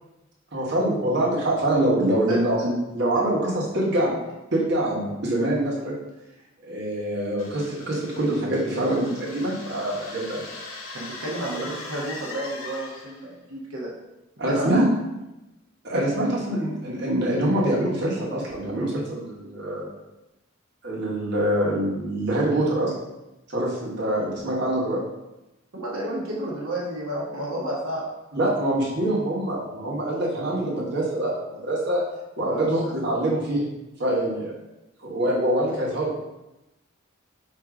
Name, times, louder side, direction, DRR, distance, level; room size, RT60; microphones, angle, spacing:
voice 1, 0.5-4.1 4.5-6.0 6.6-10.4 14.4-14.9 15.8-19.9 20.8-22.9 23.5-25.0 28.3-32.0 32.4-33.7 34.0-34.5 35.0-36.2, right 1 dB, 55° right, -5 dB, 1.1 m, -24 dB
sound 1, 7.4-13.3, left 3 dB, 80° left, 0.8 m, -40 dB
voice 2, 10.9-13.9 14.5-14.7 25.7-28.1 32.4-32.7, right 1 dB, 90° right, -5 dB, 0.9 m, -31 dB
3.7 x 2.6 x 4.7 m, 0.96 s
head